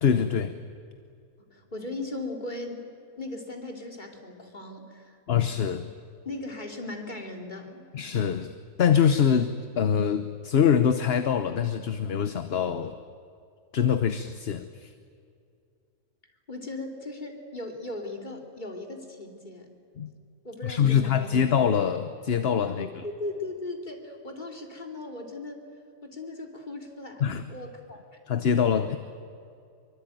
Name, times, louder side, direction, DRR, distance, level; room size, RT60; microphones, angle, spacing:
voice 1, 0.0-0.6 5.3-5.9 7.9-13.0 13.7-14.9 20.0-20.1 20.6-23.0 27.2-27.5 28.3-29.0, left 7 dB, 50° left, 10 dB, 1.1 m, -24 dB
voice 2, 1.5-2.8 3.2-5.2 6.2-7.8 16.5-19.7 20.4-21.5 22.7-25.7 26.0-28.0, left 2 dB, 35° left, 3 dB, 3.1 m, -38 dB
24.5 x 24.0 x 9.2 m, 2.4 s
omnidirectional pair, 1.4 m